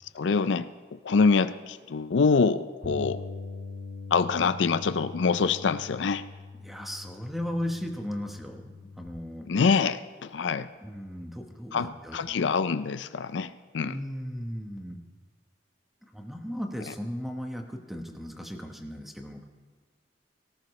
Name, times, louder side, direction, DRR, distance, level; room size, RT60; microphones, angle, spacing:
voice 1, 0.1-3.2 4.1-6.2 9.5-10.7 11.7-14.0, left 5 dB, 80° left, 13 dB, 0.5 m, -25 dB
Bass guitar, 2.8-9.1, left 3 dB, 50° left, 2.2 m, -42 dB
voice 2, 6.6-9.5 10.8-12.4 13.8-15.0 16.0-19.4, equal, ahead, 3 dB, 1.1 m, -36 dB
18.5 x 17.5 x 3.2 m, 1.5 s
head